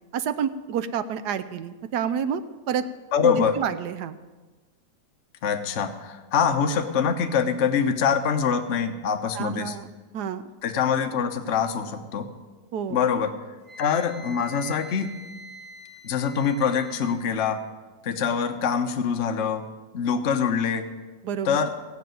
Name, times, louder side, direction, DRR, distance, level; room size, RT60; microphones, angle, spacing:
voice 1, 0.1-2.4 2.7-2.8 3.2-4.2 9.3-9.9 10.1-10.4 12.7-13.0 21.2-21.6, right 8 dB, 70° right, 12 dB, 1.2 m, -28 dB
voice 2, 3.1-3.6 5.4-9.8 10.6-12.3 12.9-13.3 13.8-15.1 16.0-17.6 18.0-19.6 19.9-20.8 21.4-21.7, left 7 dB, 50° left, 6 dB, 1.0 m, -24 dB
Wind instrument woodwind instrument, 13.7-17.2, right 1 dB, 5° left, 1.5 m, -44 dB
16.5 x 6.0 x 9.2 m, 1.3 s
omnidirectional pair, 2.0 m